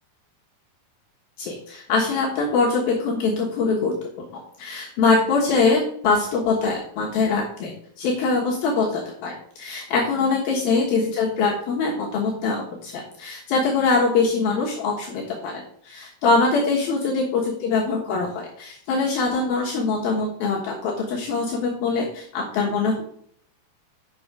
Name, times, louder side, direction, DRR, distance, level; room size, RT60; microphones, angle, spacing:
voice 1, 1.4-23.0, left 4 dB, 70° left, -2 dB, 2.9 m, -23 dB
8.7 x 6.2 x 4.7 m, 0.63 s
omnidirectional pair, 4.8 m